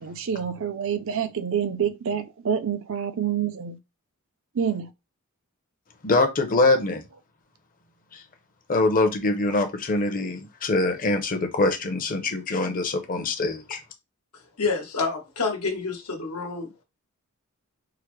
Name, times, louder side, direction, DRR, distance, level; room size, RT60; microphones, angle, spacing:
voice 1, 0.0-3.8 4.5-4.9 6.6-6.7, right 8 dB, 65° right, 0.5 m, -27 dB
voice 2, 6.0-7.0 8.1-8.2 8.7-13.8, left 2 dB, 40° left, 0.7 m, -24 dB
voice 3, 14.3-16.8, left 4 dB, 90° left, 1.2 m, -28 dB
4.8 x 2.1 x 3.1 m
head